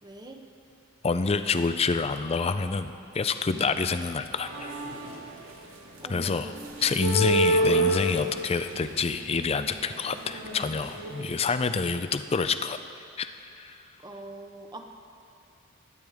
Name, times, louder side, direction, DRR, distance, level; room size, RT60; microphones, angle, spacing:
voice 1, 0.0-0.4 3.5-3.8 6.0-6.5 14.0-14.9, right 1 dB, 20° right, 4 dB, 0.9 m, -43 dB
voice 2, 1.0-4.7 6.1-6.5 6.8-12.8 13.2-13.8, left 4 dB, 25° left, 10 dB, 0.4 m, -27 dB
sound 1, 4.4-5.5 6.0-11.3, right 1 dB, 70° right, 1.6 m, -29 dB
21.0 x 9.7 x 3.6 m, 2.6 s
head